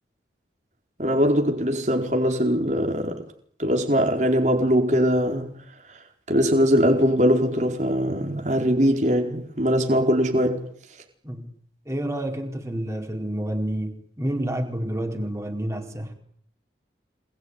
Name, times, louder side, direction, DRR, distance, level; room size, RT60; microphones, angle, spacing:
voice 1, 1.0-3.2 3.6-5.5 6.3-10.6, equal, 40° right, 4.6 m, -21 dB
voice 2, 11.9-16.1, right 1 dB, 15° right, 4.3 m, -29 dB
27.5 x 21.0 x 9.8 m
head